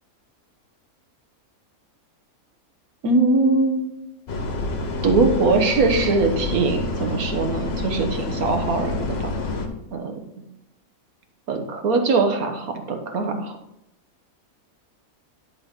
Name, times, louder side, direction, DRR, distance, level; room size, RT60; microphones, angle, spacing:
voice 1, 3.0-3.8 5.0-9.3 9.9-10.3 11.5-13.6, right 3 dB, 75° right, 5 dB, 1.5 m, -21 dB
sound 1, 4.3-9.7, left 2 dB, 50° left, 1.1 m, -28 dB
10.0 x 4.8 x 3.6 m, 0.81 s
omnidirectional pair, 1.5 m